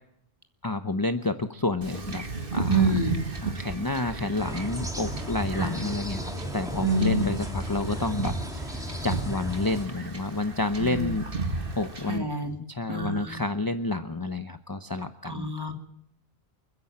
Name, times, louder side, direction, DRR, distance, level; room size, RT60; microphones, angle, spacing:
voice 1, 0.6-2.2 2.5-2.8 3.4-11.2 11.8-12.3 12.7-15.5, left 2 dB, 20° left, 9 dB, 0.8 m, -29 dB
Wind / Ocean / Boat Water vehicle, 1.8-12.2, right 3 dB, 60° right, 2.2 m, -35 dB
voice 2, 2.7-3.2 5.5-5.8 6.8-7.2 10.8-11.1 12.1-12.6 12.9-13.4 15.2-15.7, right 2 dB, 25° right, 4 dB, 2.6 m, -27 dB
sound 1, 4.4-9.8, equal, 5° right, 2.6 m, -35 dB
29.0 x 10.5 x 8.7 m, 0.71 s
omnidirectional pair, 1.0 m